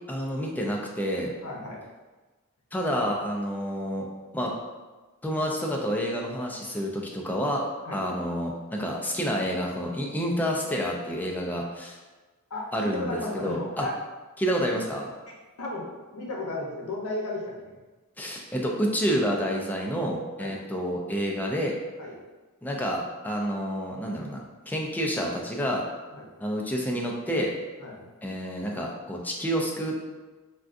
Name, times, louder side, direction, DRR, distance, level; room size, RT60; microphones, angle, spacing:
voice 1, 0.1-1.3 2.7-4.5 5.2-7.6 7.9-12.0 12.7-13.9 14.4-15.1 18.2-21.7 22.6-25.8 26.4-27.5 28.2-30.0, equal, 10° left, -1 dB, 0.4 m, -29 dB
voice 2, 1.4-1.8 7.9-8.0 12.5-13.9 15.3-17.7 20.4-20.6 22.0-22.2 26.1-26.3 27.8-28.1, left 2 dB, 75° left, -2 dB, 0.8 m, -35 dB
3.6 x 2.3 x 2.5 m, 1.2 s
head